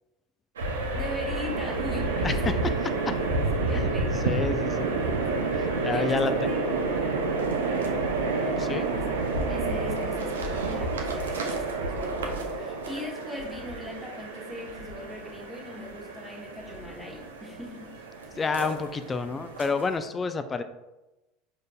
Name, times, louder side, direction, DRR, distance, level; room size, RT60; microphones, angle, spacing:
sound 1, 0.6-20.0, right 3 dB, 90° right, 0.5 m, -29 dB
voice 1, 0.9-2.7 3.3-5.6 5.9-6.6 8.9-9.2 9.5-18.0, left 1 dB, 5° left, -2 dB, 1.0 m, -40 dB
voice 2, 3.7-4.9 5.8-6.3 8.6-8.9 18.4-20.6, left 4 dB, 25° left, 9 dB, 0.3 m, -29 dB
4.9 x 2.8 x 2.2 m, 1.0 s
hypercardioid pair, 85°, 0 cm